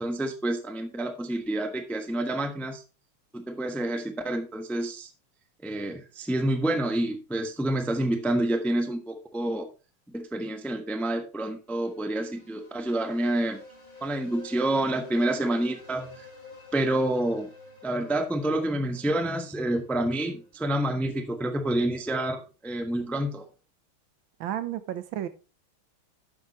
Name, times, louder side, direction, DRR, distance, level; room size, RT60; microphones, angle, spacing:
voice 1, 0.0-2.8 3.3-5.1 5.6-9.7 10.1-13.6 14.0-16.3 16.7-17.5 17.8-23.4, right 1 dB, ahead, 0.7 m, -28 dB
sound 1, 11.7-20.5, left 3 dB, 20° left, 4.0 m, -50 dB
voice 2, 24.4-25.3, right 11 dB, 75° right, 1.6 m, -32 dB
11.5 x 8.2 x 3.1 m
omnidirectional pair, 2.2 m